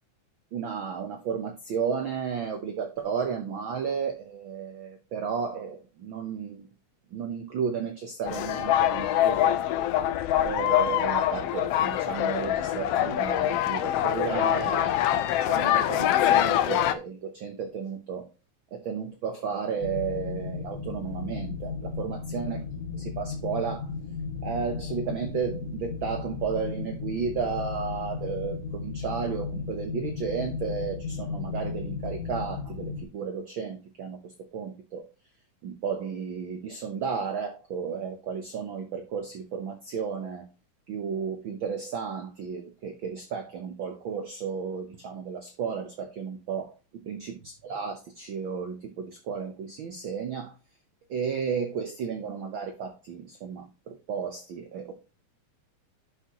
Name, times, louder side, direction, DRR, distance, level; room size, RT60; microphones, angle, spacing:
voice 1, 0.5-6.7 7.1-9.6 10.4-18.2 18.7-22.6 23.0-23.9 24.4-35.1 35.6-40.4 40.9-46.7 47.1-50.5 51.1-54.9, right 6 dB, 75° right, 6 dB, 1.1 m, -33 dB
sound 1, 8.3-16.9, left 12 dB, 90° left, 1.3 m, -24 dB
sound 2, 19.8-33.0, left 5 dB, 55° left, 2.4 m, -35 dB
11.5 x 6.0 x 3.0 m, 0.28 s
omnidirectional pair, 3.5 m